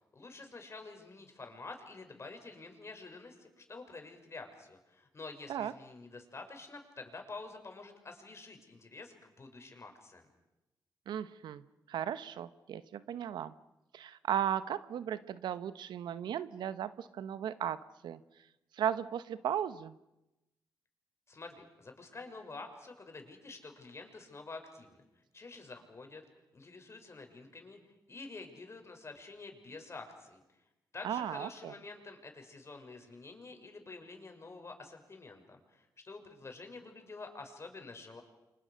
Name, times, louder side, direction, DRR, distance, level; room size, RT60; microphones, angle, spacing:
voice 1, 0.1-10.2 21.3-25.0 25.3-26.2 26.5-27.8 28.1-30.4 30.9-38.2, left 3 dB, 40° left, 4 dB, 6.1 m, -48 dB
voice 2, 11.1-13.5 13.9-18.2 18.7-20.0 31.0-31.7, right 9 dB, 85° right, 14 dB, 1.0 m, -36 dB
29.5 x 25.5 x 6.5 m, 0.95 s
cardioid pair, 70°, 7 cm